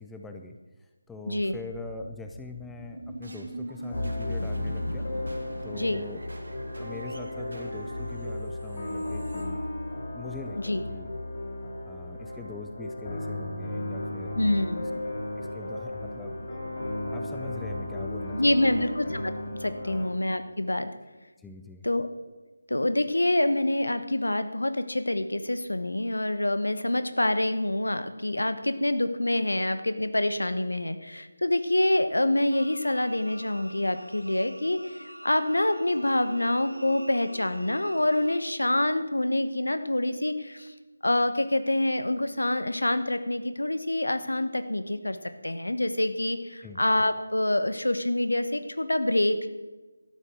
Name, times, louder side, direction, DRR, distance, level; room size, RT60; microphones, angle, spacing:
voice 1, 0.0-5.1 5.6-6.2 6.8-9.6 10.1-11.1 11.9-14.4 15.1-16.6 17.1-18.9 19.8-20.1 21.4-21.8 46.6-46.8, left 3 dB, 5° left, 4 dB, 0.5 m, -43 dB
voice 2, 1.3-1.6 5.7-6.0 10.6-10.8 14.4-14.8 18.3-19.3 19.6-20.9 21.8-22.1 22.7-40.7 41.0-45.2 45.4-49.5, left 1 dB, 70° left, 10 dB, 1.1 m, -26 dB
sound 1, 1.3-10.2, right 1 dB, 60° right, 2.2 m, -42 dB
sound 2, 3.9-20.1, left 1 dB, 35° left, 4.1 m, -34 dB
sound 3, 32.5-38.4, right 1 dB, 85° right, 1.0 m, -45 dB
12.5 x 9.0 x 6.3 m, 1.2 s
figure-of-eight pair, 160°, 0 cm